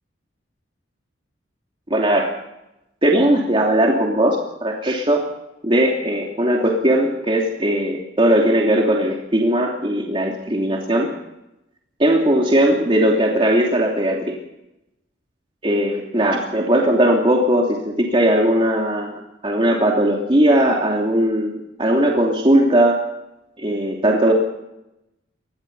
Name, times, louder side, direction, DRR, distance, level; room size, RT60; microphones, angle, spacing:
voice 1, 1.9-2.3 3.0-5.2 5.6-11.1 12.0-14.4 15.6-19.1 19.4-23.0 23.6-24.3, right 1 dB, 25° right, -1 dB, 2.9 m, -18 dB
26.0 x 20.5 x 5.5 m, 0.88 s
head